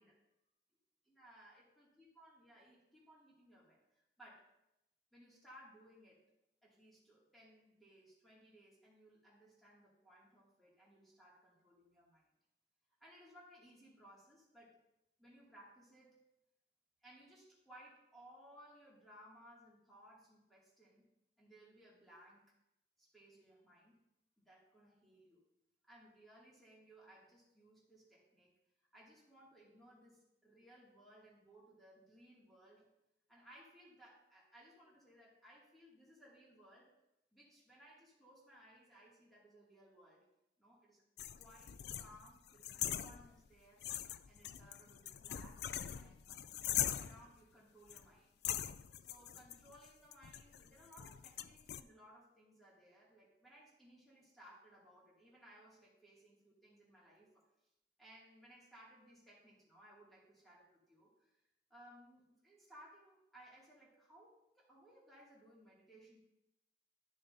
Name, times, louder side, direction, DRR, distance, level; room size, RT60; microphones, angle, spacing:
voice 1, 1.1-4.5 5.1-6.2 6.6-12.3 13.0-14.8 15.2-16.2 17.0-21.1 21.4-22.5 23.0-24.0 24.4-25.4 25.8-28.5 28.9-32.9 33.3-36.9 37.3-40.2 40.6-41.0 41.4-43.8 44.3-45.6 45.9-48.4 49.0-57.4 58.0-61.4 61.7-66.2, equal, ahead, -7 dB, 2.3 m, -62 dB
sound 1, 41.2-43.5 43.8-47.3 47.9-48.1 48.4-51.8, left 11 dB, 65° left, 0.3 m, -42 dB
11.5 x 6.5 x 2.7 m, 0.88 s
head